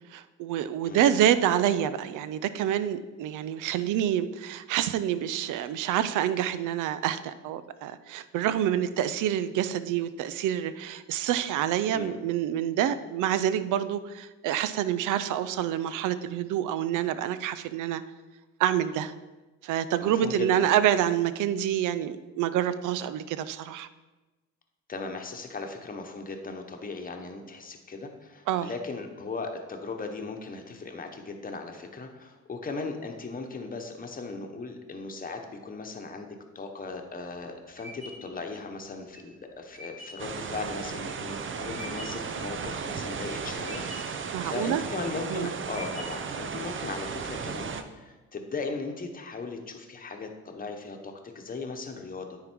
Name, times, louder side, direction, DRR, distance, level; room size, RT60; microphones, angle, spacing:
voice 1, 0.1-18.0 18.6-19.1 19.6-23.9 28.5-28.7 44.3-44.8 45.3-45.5, right 10 dB, 85° right, 13 dB, 0.5 m, -27 dB
voice 2, 20.0-20.7 24.9-52.4, left 3 dB, 30° left, 4 dB, 1.0 m, -38 dB
sound 1, 37.1-42.3 42.8-43.3 43.6-44.3 44.8-45.3 45.7-46.4, equal, 55° right, 1.7 m, -45 dB
sound 2, 40.2-47.8, right 6 dB, 40° right, 0.6 m, -35 dB
9.5 x 3.8 x 4.6 m, 1.2 s
cardioid pair, 90°, 30 cm